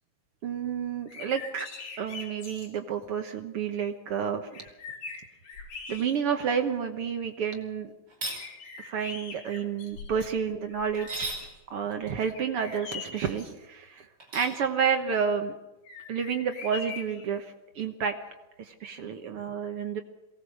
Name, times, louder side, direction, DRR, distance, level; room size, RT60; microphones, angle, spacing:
voice 1, 0.4-1.7 2.0-4.6 5.9-7.9 8.8-11.3 11.7-14.1 14.3-15.5 16.1-18.1 18.6-20.0, right 7 dB, 60° right, 6 dB, 1.6 m, -30 dB
sound 1, 1.0-2.7 4.1-4.2 4.5-6.5 7.0-7.1 8.3-10.3 10.7-11.6 12.3-13.5 15.8-17.3, left 5 dB, 80° left, 4.8 m, -43 dB
sound 2, 8.1-8.4 10.9-11.4 14.2-14.6, right 2 dB, 30° right, 5.3 m, -35 dB
22.5 x 18.5 x 6.5 m, 1.0 s
omnidirectional pair, 3.8 m